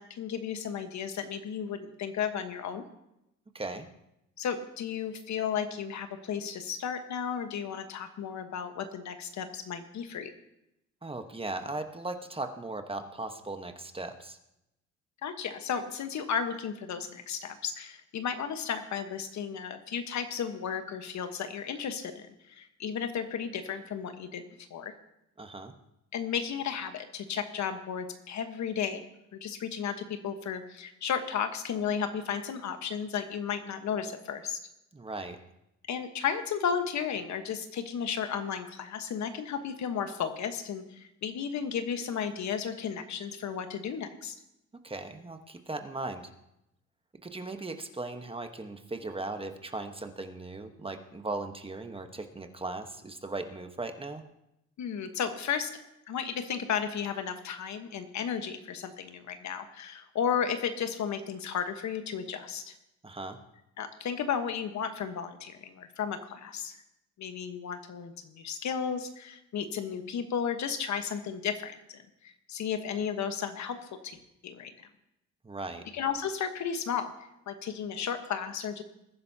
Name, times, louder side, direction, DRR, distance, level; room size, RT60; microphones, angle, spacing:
voice 1, 0.0-2.8 4.4-10.3 15.2-24.9 26.1-29.0 29.3-34.6 35.9-44.3 54.8-55.7 56.1-62.7 63.8-66.8 67.2-73.8 74.0-74.2 74.4-74.7 75.9-77.1 77.5-78.8, left 7 dB, 65° left, 8 dB, 1.3 m, -34 dB
voice 2, 3.5-3.9 11.0-14.4 25.4-25.7 34.9-35.4 44.8-46.3 47.2-54.2 63.0-63.4 75.4-75.9, right 2 dB, 20° right, 6 dB, 1.2 m, -38 dB
20.5 x 10.5 x 2.8 m, 0.84 s
cardioid pair, 90°, 30 cm